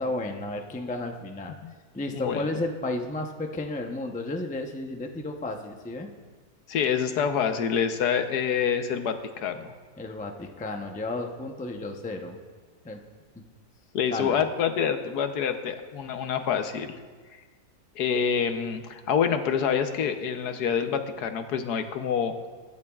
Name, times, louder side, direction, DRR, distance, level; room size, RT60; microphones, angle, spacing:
voice 1, 0.0-1.6 1.9-6.1 10.0-12.4 12.8-13.0 13.3-13.4 14.1-14.4, left 2 dB, 10° left, 3 dB, 0.4 m, -33 dB
voice 2, 2.1-2.5 6.7-9.7 13.9-17.0 18.0-22.3, left 7 dB, 75° left, 7 dB, 1.4 m, -27 dB
23.0 x 11.0 x 2.4 m, 1.5 s
omnidirectional pair, 1.7 m